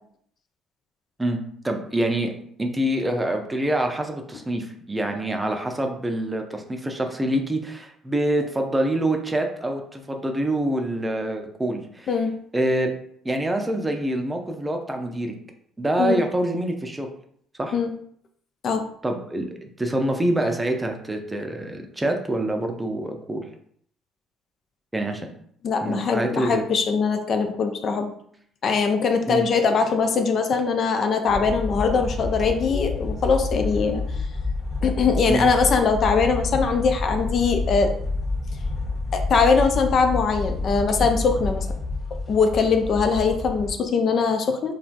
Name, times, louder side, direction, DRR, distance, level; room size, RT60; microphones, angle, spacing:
voice 1, 1.6-12.1 12.5-12.9 13.2-15.3 15.8-17.1 17.6-17.8 19.0-23.5 24.9-25.3 25.8-26.7 29.3-29.4 35.3-35.5, right 1 dB, 15° right, 4 dB, 0.5 m, -26 dB
voice 2, 25.6-28.1 28.6-34.0 34.8-37.9 39.1-41.7 42.3-44.7, left 5 dB, 50° left, 6 dB, 0.3 m, -21 dB
sound 1, 31.3-43.7, left 3 dB, 30° left, 0.9 m, -28 dB
3.1 x 2.4 x 2.5 m, 0.64 s
hypercardioid pair, 55°, 0 cm